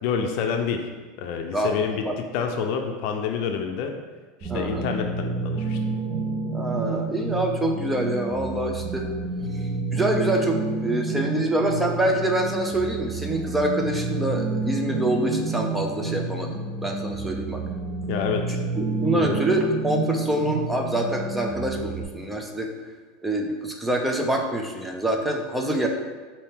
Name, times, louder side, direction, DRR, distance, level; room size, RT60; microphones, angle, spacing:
voice 1, 0.0-0.9 1.2-4.0 4.4-5.8 18.1-18.6 19.1-19.4, left 6 dB, 60° left, 5 dB, 0.5 m, -28 dB
voice 2, 1.5-2.1 4.5-4.9 6.5-9.1 9.5-17.6 18.8-22.7 23.2-25.9, right 1 dB, 5° right, 2 dB, 0.5 m, -26 dB
sound 1, 4.4-22.0, right 3 dB, 40° right, 1.0 m, -29 dB
5.5 x 2.7 x 3.5 m, 1.4 s
supercardioid pair, 125°, 0 cm